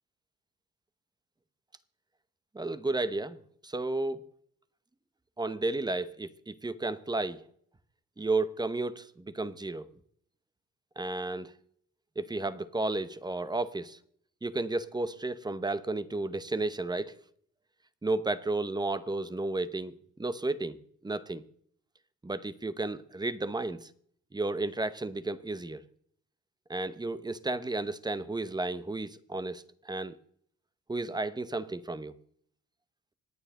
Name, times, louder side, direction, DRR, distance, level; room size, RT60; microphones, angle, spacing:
voice 1, 2.5-4.2 5.4-7.4 8.2-9.9 11.0-11.5 12.2-14.0 14.4-17.1 18.0-19.9 20.2-21.4 22.2-23.9 24.3-25.8 26.7-30.2 30.9-32.1, right 2 dB, 15° right, 0.9 m, -33 dB
26.5 x 9.1 x 3.7 m
cardioid pair, 90°, 30 cm